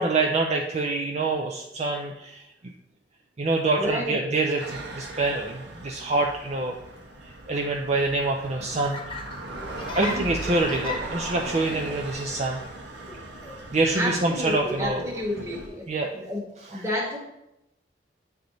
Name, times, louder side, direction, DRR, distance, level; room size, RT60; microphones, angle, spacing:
voice 1, 0.0-2.7 3.4-6.7 7.5-9.2 9.9-12.6 13.7-15.1 15.9-16.1 16.7-16.8, right 2 dB, 40° right, 2 dB, 0.4 m, -26 dB
voice 2, 3.8-4.3 10.0-10.3 13.9-15.9 16.1-16.4 16.7-17.2, equal, 15° right, -2 dB, 1.3 m, -30 dB
sound 1, 4.6-15.7, right 2 dB, 75° right, 1.0 m, -38 dB
Laughter, 8.4-15.9, left 3 dB, 30° left, 0.8 m, -41 dB
8.1 x 3.4 x 3.8 m, 0.84 s
head